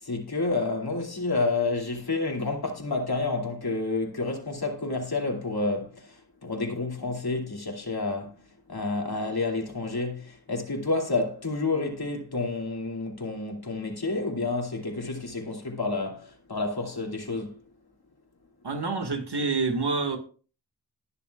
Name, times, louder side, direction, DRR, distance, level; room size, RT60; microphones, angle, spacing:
voice 1, 0.0-17.6, left 3 dB, 70° left, 2.6 m, -29 dB
voice 2, 18.6-20.2, right 4 dB, 85° right, 1.8 m, -27 dB
20.0 x 6.9 x 2.4 m
wide cardioid pair, 55°, 39 cm